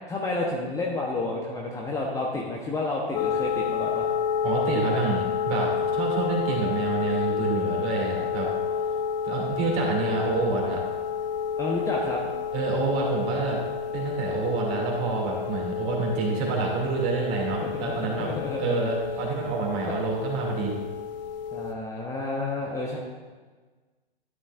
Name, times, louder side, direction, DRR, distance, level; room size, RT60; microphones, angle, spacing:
voice 1, 0.1-4.1 8.7-9.1 11.6-12.2 17.6-18.9 19.8-19.9 21.5-23.0, left 2 dB, 10° left, -2 dB, 0.9 m, -30 dB
sound 1, 3.1-21.7, left 7 dB, 45° left, 0.9 m, -30 dB
voice 2, 4.4-8.5 9.2-10.8 12.5-13.6 13.9-20.7, right 4 dB, 35° right, 0 dB, 2.5 m, -28 dB
12.5 x 9.6 x 2.5 m, 1.4 s
figure-of-eight pair, 115°, 30 cm